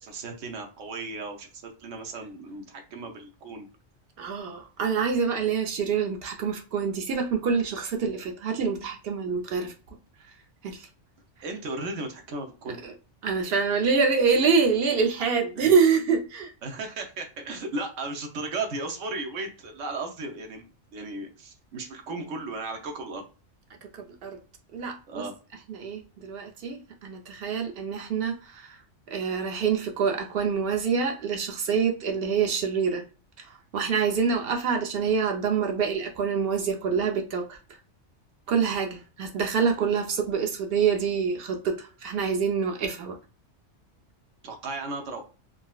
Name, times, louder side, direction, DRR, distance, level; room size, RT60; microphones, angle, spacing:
voice 1, 0.0-3.7 9.3-9.4 11.4-12.8 15.6-15.8 16.6-20.7 20.9-23.3 25.1-25.3 44.4-45.2, right 3 dB, 90° right, 1.1 m, -35 dB
voice 2, 4.2-9.7 10.6-10.9 12.8-12.9 13.2-16.5 24.2-24.4 24.7-25.3 25.7-28.8 29.1-33.0 33.7-37.6 38.5-43.2, right 6 dB, 60° right, 0.8 m, -26 dB
3.9 x 2.0 x 2.3 m
omnidirectional pair, 1.2 m